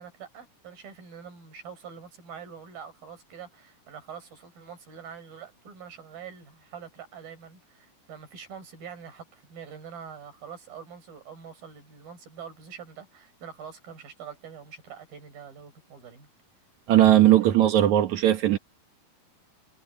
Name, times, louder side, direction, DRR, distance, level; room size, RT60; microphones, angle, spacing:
voice 1, 0.0-16.3, right 7 dB, 90° right, 7.4 m, -44 dB
voice 2, 16.9-18.6, right 13 dB, 65° right, 2.2 m, -18 dB
omnidirectional pair, 4.0 m